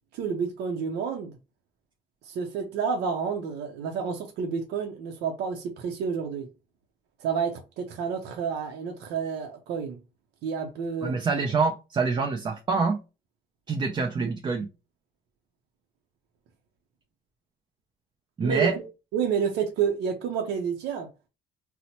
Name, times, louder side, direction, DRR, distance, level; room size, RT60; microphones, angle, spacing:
voice 1, 0.1-1.4 2.2-6.5 7.2-10.0 10.4-11.2 18.4-18.8 19.1-21.1, right 6 dB, 80° right, 0.6 m, -29 dB
voice 2, 11.0-13.0 13.7-14.7 18.4-18.8, right 4 dB, 25° right, 0.4 m, -26 dB
4.1 x 2.1 x 2.9 m
cardioid pair, 110°, 17 cm